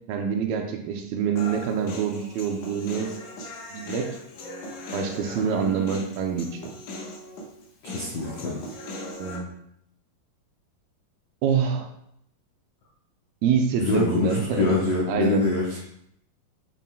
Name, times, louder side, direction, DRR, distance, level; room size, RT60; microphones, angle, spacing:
voice 1, 0.1-3.1 3.7-4.1 4.9-6.7 9.2-9.5 11.4-11.9 13.4-15.5, right 7 dB, 80° right, 4 dB, 2.4 m, -26 dB
Human voice, 1.4-9.4, left 1 dB, 65° left, 2.2 m, -38 dB
voice 2, 7.8-8.5 13.8-15.8, left 3 dB, 90° left, -4 dB, 1.3 m, -25 dB
9.1 x 5.4 x 2.3 m, 0.73 s
omnidirectional pair, 4.4 m